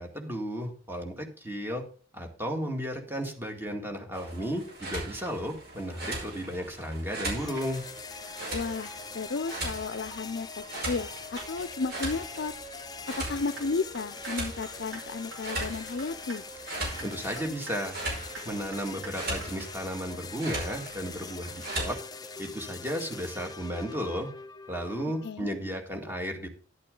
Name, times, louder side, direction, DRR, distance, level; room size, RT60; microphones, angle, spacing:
voice 1, 0.0-1.8 2.1-7.8 16.7-18.0 18.5-22.0 22.2-24.3 24.7-26.5, equal, 10° right, 3 dB, 1.9 m, -34 dB
sound 1, 4.1-22.0, right 1 dB, 55° right, 5.3 m, -39 dB
sound 2, 7.4-25.3, left 4 dB, 20° left, 0.7 m, -43 dB
voice 2, 8.5-10.5 10.9-12.5 13.3-16.4 25.2-25.5, left 4 dB, 60° left, 15 dB, 0.5 m, -33 dB
sound 3, 13.3-13.7 13.9-14.3 14.6-15.0 15.3-15.7 16.0-16.4 16.7-17.1 17.4-17.7 18.0-18.4 18.7-19.1 19.4-19.5, right 3 dB, 70° right, 3.6 m, -43 dB
11.5 x 8.5 x 3.8 m, 0.38 s
head